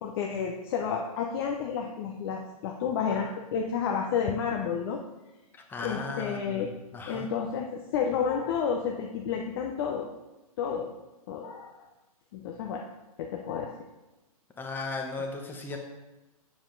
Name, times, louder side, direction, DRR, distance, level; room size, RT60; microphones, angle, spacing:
voice 1, 0.0-5.0 5.8-6.7 7.1-10.1 10.6-10.9 11.3-11.7 12.3-12.8 13.2-13.8, left 7 dB, 40° left, 1 dB, 0.7 m, -31 dB
voice 2, 5.5-7.3 14.6-15.8, left 3 dB, 10° left, 3 dB, 0.9 m, -36 dB
7.2 x 7.1 x 3.9 m, 1.0 s
hypercardioid pair, 130°, 19 cm